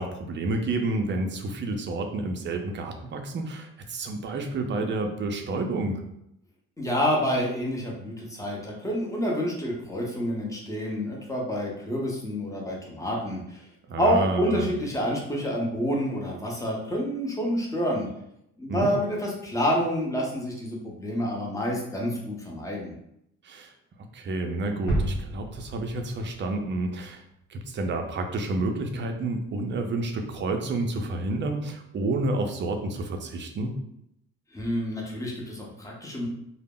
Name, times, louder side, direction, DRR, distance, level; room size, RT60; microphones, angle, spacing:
voice 1, 0.0-6.0 13.9-14.7 18.7-18.9 23.4-23.7 24.1-27.2 27.5-33.7, right 2 dB, 40° right, 4 dB, 0.5 m, -29 dB
voice 2, 6.8-13.7 14.0-18.1 18.6-22.9 34.5-36.3, equal, 10° left, -2 dB, 0.7 m, -28 dB
sound 1, 24.9-26.8 27.2-27.3, right 1 dB, 80° left, 0.9 m, -31 dB
2.0 x 2.0 x 3.6 m, 0.78 s
cardioid pair, 90°, 30 cm